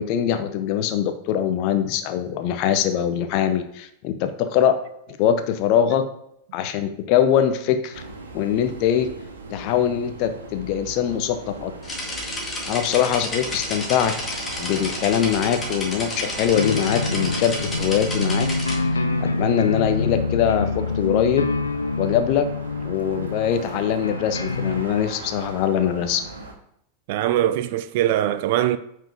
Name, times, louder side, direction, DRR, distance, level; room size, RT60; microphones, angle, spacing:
voice 1, 0.0-4.8 5.2-6.1 6.5-8.0 8.3-9.1 9.5-11.7 12.7-14.1 14.6-18.5 18.8-21.5 22.0-22.5 22.8-26.2, left 9 dB, 45° left, 0.8 m, -22 dB
sound 1, 7.9-26.5, right 3 dB, 70° right, 1.1 m, -38 dB
sound 2, 11.8-18.7, left 1 dB, 15° left, 2.1 m, -31 dB
sound 3, 16.5-24.8, left 3 dB, 75° left, 0.5 m, -26 dB
voice 2, 27.1-28.8, right 12 dB, 50° right, 0.5 m, -22 dB
8.9 x 4.6 x 3.5 m
figure-of-eight pair, 90°, 0 cm